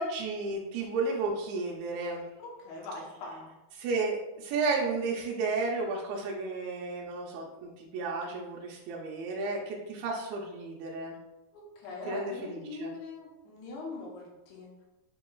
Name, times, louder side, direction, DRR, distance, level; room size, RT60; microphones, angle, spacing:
voice 1, 0.0-2.3 3.7-11.2 12.1-12.9, right 3 dB, 80° right, -2 dB, 2.4 m, -33 dB
voice 2, 2.4-3.5 11.5-14.7, left 2 dB, 90° left, -2 dB, 3.0 m, -42 dB
7.0 x 2.8 x 2.3 m, 0.97 s
omnidirectional pair, 4.5 m